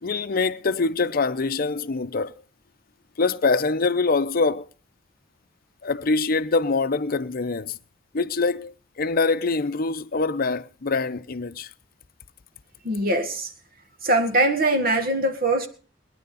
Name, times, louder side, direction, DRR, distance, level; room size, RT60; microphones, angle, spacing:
voice 1, 0.0-2.3 3.2-4.7 5.8-7.8 8.1-11.7, left 3 dB, 50° left, 0.7 m, -24 dB
voice 2, 12.8-13.5 14.0-15.7, right 1 dB, 50° right, 1.9 m, -22 dB
21.5 x 10.0 x 4.1 m
head